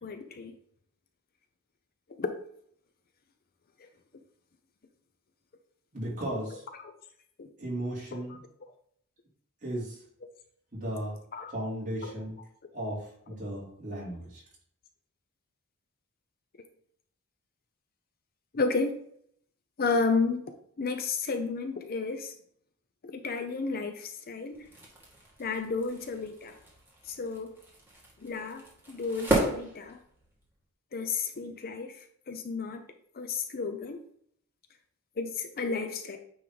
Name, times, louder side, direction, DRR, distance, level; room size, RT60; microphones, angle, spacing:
voice 1, 0.0-0.5 2.2-2.3 6.7-6.9 7.4-7.5 8.1-8.4 11.3-11.5 12.0-12.3 18.5-19.0 19.8-20.4 20.8-22.3 23.0-24.7 25.4-26.6 27.1-27.5 28.2-30.0 30.9-32.0 32.3-32.8 33.1-34.0 35.2-36.2, left 4 dB, 45° left, 6 dB, 0.5 m, -32 dB
voice 2, 5.9-6.6 7.6-8.4 9.6-9.9 10.7-11.1 11.5-12.4 12.7-14.4, right 1 dB, 35° right, -5 dB, 2.9 m, -35 dB
sound 1, 24.5-30.5, right 1 dB, 10° right, 1.7 m, -35 dB
9.2 x 3.1 x 3.9 m, 0.66 s
head